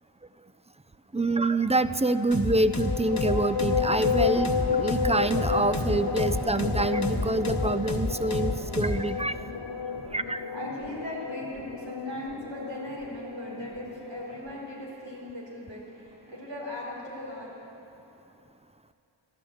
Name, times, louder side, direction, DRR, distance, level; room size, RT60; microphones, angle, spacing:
voice 1, 1.1-9.3 10.1-10.5, right 2 dB, 15° right, 12 dB, 0.4 m, -26 dB
sound 1, 2.3-9.0, left 2 dB, 35° left, 1.4 m, -30 dB
sound 2, 2.7-14.6, left 6 dB, 75° left, 1.3 m, -31 dB
voice 2, 10.5-17.5, left 1 dB, 65° right, -4 dB, 4.0 m, -38 dB
14.5 x 11.5 x 7.8 m, 2.9 s
wide cardioid pair, 60°, 48 cm